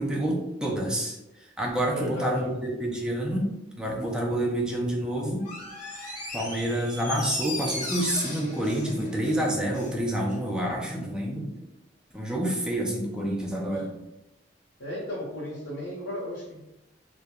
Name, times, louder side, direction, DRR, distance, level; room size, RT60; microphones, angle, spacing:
voice 1, 0.0-3.5 3.8-5.4 6.0-11.5 12.1-13.9, right 1 dB, 5° right, -2 dB, 0.4 m, -28 dB
voice 2, 1.9-2.6 13.7-13.8 14.8-16.6, left 1 dB, 80° left, -8 dB, 0.8 m, -34 dB
Door, 5.4-10.0 10.3-10.4, left 1 dB, 45° left, 0.9 m, -37 dB
2.9 x 2.1 x 2.3 m, 0.93 s
head